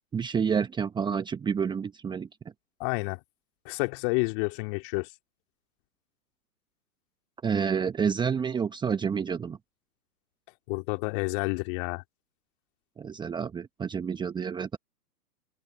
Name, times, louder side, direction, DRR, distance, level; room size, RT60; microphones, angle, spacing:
voice 1, 0.1-2.3 7.4-9.6 13.0-14.8, right 6 dB, 10° right, 1.4 m, -29 dB
voice 2, 2.8-3.2 3.6-5.1 10.7-12.0, left 34 dB, 30° left, 2.8 m, -29 dB
figure-of-eight pair, 125°, 50 cm